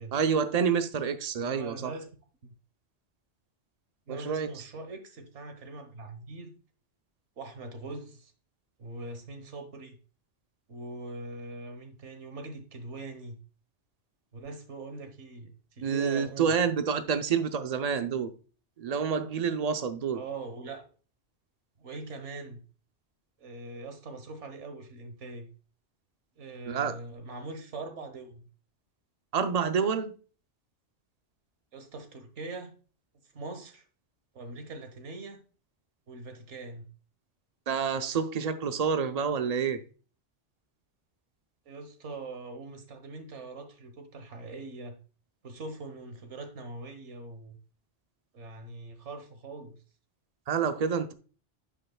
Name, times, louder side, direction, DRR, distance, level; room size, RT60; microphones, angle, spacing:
voice 1, 0.1-1.9 4.1-4.5 15.8-18.3 18.8-20.2 26.7-26.9 29.3-30.1 37.7-39.8 50.5-51.1, right 6 dB, 45° right, 0.6 m, -28 dB
voice 2, 1.4-2.1 2.4-2.5 4.1-6.5 7.4-8.3 8.8-10.0 10.7-13.4 14.3-16.6 20.1-20.9 21.8-22.6 23.4-25.5 26.4-28.4 31.7-32.7 33.3-33.8 34.3-35.4 36.1-36.9 41.7-45.0 45.4-47.6 48.3-49.8, right 3 dB, 75° right, 1.5 m, -42 dB
9.6 x 5.6 x 2.2 m
omnidirectional pair, 1.2 m